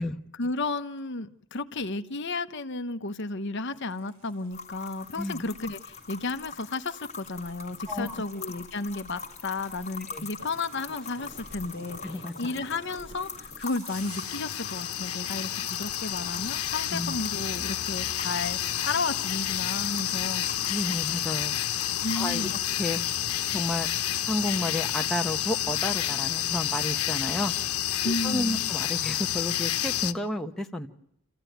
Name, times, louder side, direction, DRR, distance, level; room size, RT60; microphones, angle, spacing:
voice 1, 0.3-20.4 22.0-22.5 28.0-28.6, left 3 dB, 50° left, 1.0 m, -33 dB
sound 1, 3.7-14.7, right 1 dB, 85° right, 7.5 m, -51 dB
sound 2, 4.5-22.8, left 5 dB, 30° left, 1.7 m, -43 dB
voice 2, 7.9-8.2 10.1-10.3 12.0-12.3 16.9-17.2 20.7-21.5 22.1-22.5 22.8-23.0 23.5-23.9 24.3-27.5 28.0-30.9, left 1 dB, ahead, 1.0 m, -31 dB
sound 3, 13.9-30.1, left 12 dB, 80° left, 1.1 m, -29 dB
29.0 x 15.0 x 9.3 m
head